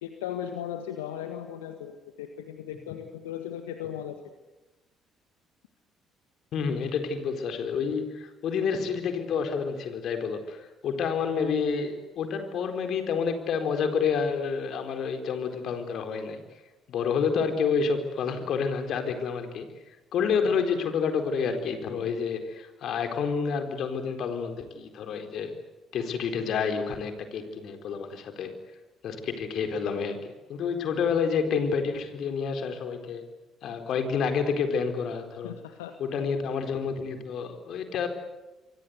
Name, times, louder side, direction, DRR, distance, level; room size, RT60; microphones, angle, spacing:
voice 1, 0.0-4.4 35.4-35.9, left 10 dB, 80° left, 6 dB, 1.7 m, -37 dB
voice 2, 6.5-16.4 16.9-25.5 25.9-28.5 29.0-33.2 33.6-35.5 36.0-38.1, left 6 dB, 60° left, 6 dB, 4.2 m, -29 dB
28.0 x 24.5 x 8.2 m, 1.1 s
hypercardioid pair, 50°, 0 cm